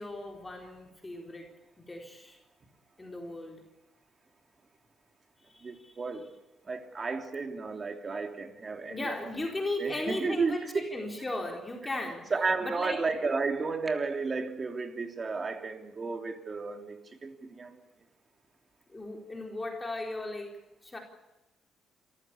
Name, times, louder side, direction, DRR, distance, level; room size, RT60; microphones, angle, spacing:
voice 1, 0.0-1.5 1.8-2.4 3.0-3.6 5.5-6.0 8.9-12.3 12.6-13.1 18.9-21.0, left 2 dB, 20° left, 1 dB, 4.0 m, -37 dB
voice 2, 5.6-6.2 6.7-9.3 9.8-10.6 12.3-17.8, right 4 dB, 35° right, 5 dB, 3.2 m, -33 dB
27.5 x 14.5 x 8.4 m, 1.0 s
cardioid pair, 90°, 0 cm